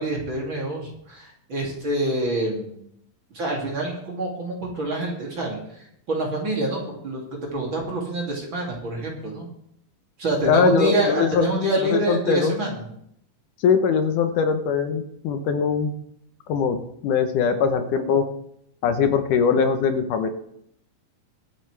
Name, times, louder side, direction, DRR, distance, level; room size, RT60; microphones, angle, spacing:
voice 1, 0.0-2.8 3.3-5.6 6.1-7.2 7.5-9.5 10.2-12.8, right 1 dB, 40° right, -2 dB, 3.1 m, -26 dB
voice 2, 10.5-11.5 11.9-12.5 13.6-15.9 16.5-16.8 17.0-18.2 18.8-20.3, left 6 dB, 75° left, 7 dB, 2.4 m, -21 dB
23.5 x 8.8 x 3.3 m, 0.74 s
omnidirectional pair, 3.9 m